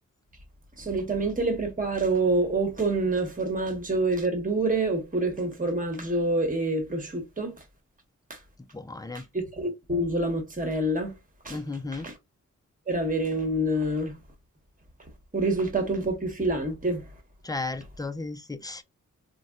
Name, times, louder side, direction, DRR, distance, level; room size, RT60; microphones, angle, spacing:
voice 1, 0.8-7.6 8.3-8.4 9.1-11.1 11.4-11.6 11.9-12.2 12.9-14.2 15.3-17.1, right 2 dB, 25° right, 1.1 m, -27 dB
voice 2, 8.7-9.3 11.5-12.1 17.4-18.8, left 3 dB, 10° left, 0.4 m, -34 dB
4.0 x 2.1 x 2.3 m
cardioid pair, 80°, 31 cm